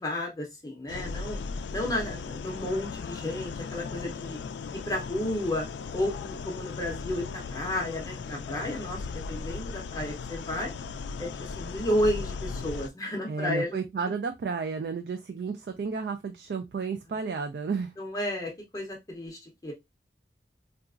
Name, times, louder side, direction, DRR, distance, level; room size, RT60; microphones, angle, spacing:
voice 1, 0.0-1.4 1.7-4.4 4.7-5.7 5.9-10.7 11.2-13.8 18.0-19.7, left 1 dB, 20° left, 0.5 m, -32 dB
sound 1, 0.9-12.9, left 5 dB, 85° left, 0.3 m, -37 dB
voice 2, 13.3-17.9, right 5 dB, 65° right, 0.3 m, -32 dB
3.8 x 2.3 x 2.4 m
head